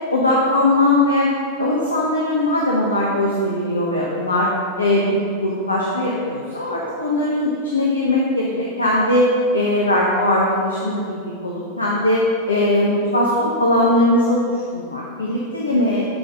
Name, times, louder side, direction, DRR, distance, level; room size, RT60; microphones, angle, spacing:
voice 1, 0.1-1.3 1.6-4.5 4.8-9.3 9.5-12.2 12.5-16.0, left 1 dB, 80° left, -3 dB, 0.9 m, -20 dB
7.4 x 5.0 x 5.1 m, 2.3 s
figure-of-eight pair, 90°, 0 cm